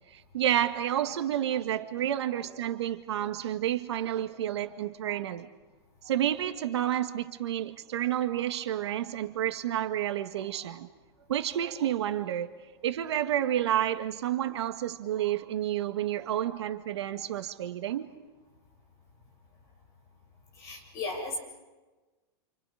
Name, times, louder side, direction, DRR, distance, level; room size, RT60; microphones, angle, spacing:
voice 1, 0.1-5.5 6.0-10.9 11.3-12.5 12.8-18.1, right 11 dB, 75° right, 7 dB, 1.9 m, -30 dB
voice 2, 20.6-21.4, left 3 dB, 20° left, -1 dB, 7.4 m, -35 dB
29.0 x 28.5 x 5.1 m, 1.2 s
supercardioid pair, 175°, 14 cm